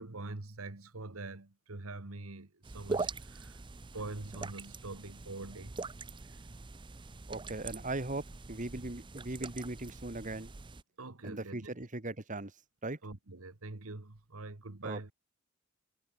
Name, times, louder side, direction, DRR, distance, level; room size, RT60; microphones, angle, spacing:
voice 1, 0.0-3.6 3.9-5.8 6.3-6.4 11.0-11.7 13.0-15.1, right 2 dB, 85° right, 1.7 m, -44 dB
sound 1, 2.6-10.8, right 3 dB, 25° right, 0.6 m, -43 dB
voice 2, 7.3-10.5 11.2-12.5 12.8-13.0 14.8-15.0, right 2 dB, 40° right, 1.9 m, -39 dB
head